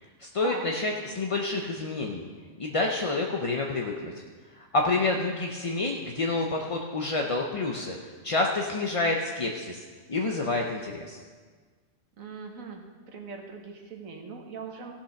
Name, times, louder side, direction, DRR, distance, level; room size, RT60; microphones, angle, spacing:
voice 1, 0.2-2.3 2.6-4.1 4.5-8.0 8.2-9.8 10.1-11.2, left 3 dB, 35° left, 1 dB, 0.6 m, -28 dB
voice 2, 12.2-14.9, right 4 dB, 85° right, 2 dB, 1.7 m, -40 dB
16.0 x 5.9 x 5.8 m, 1.5 s
omnidirectional pair, 1.4 m